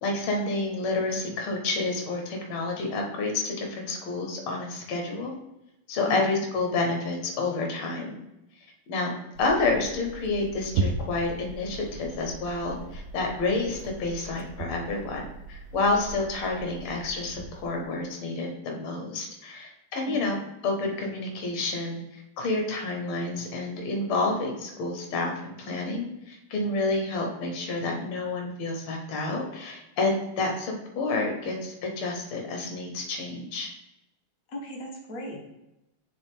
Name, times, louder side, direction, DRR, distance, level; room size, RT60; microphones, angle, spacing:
voice 1, 0.0-5.4 5.9-8.2 8.9-9.1 9.4-33.7, left 3 dB, 75° left, 1 dB, 1.9 m, -29 dB
voice 2, 6.1-6.5 20.1-20.3 34.5-35.4, equal, 45° left, -1 dB, 1.6 m, -37 dB
sound 1, 9.3-18.0, right 3 dB, 75° right, 1.2 m, -37 dB
8.6 x 3.3 x 3.6 m, 0.91 s
omnidirectional pair, 2.4 m